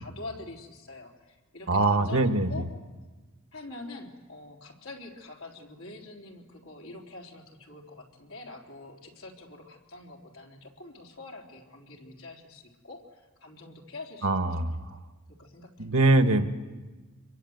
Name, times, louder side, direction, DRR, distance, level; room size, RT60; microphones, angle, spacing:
voice 1, 0.0-2.7 3.5-15.0 15.3-16.1, left 2 dB, 70° left, 1 dB, 3.7 m, -45 dB
voice 2, 1.7-2.6 14.2-14.9 15.8-16.5, right 2 dB, 65° right, 8 dB, 1.6 m, -23 dB
27.0 x 23.0 x 8.0 m, 1.3 s
head